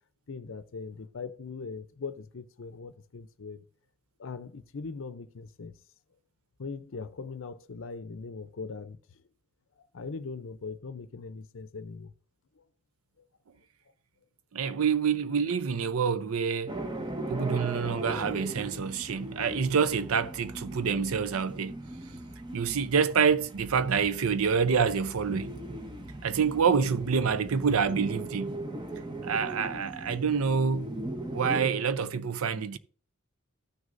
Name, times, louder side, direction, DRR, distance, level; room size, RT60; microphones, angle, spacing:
voice 1, 0.3-3.6 4.2-5.7 6.6-9.0 9.9-12.1 17.4-17.5, left 4 dB, 60° left, 0.6 m, -40 dB
voice 2, 14.5-16.8 17.3-21.8 22.5-25.5 26.2-28.6 29.2-30.9 31.3-32.8, right 6 dB, 80° right, 0.6 m, -27 dB
sound 1, 16.7-31.7, right 1 dB, 20° right, 0.9 m, -39 dB
14.5 x 6.3 x 2.6 m
head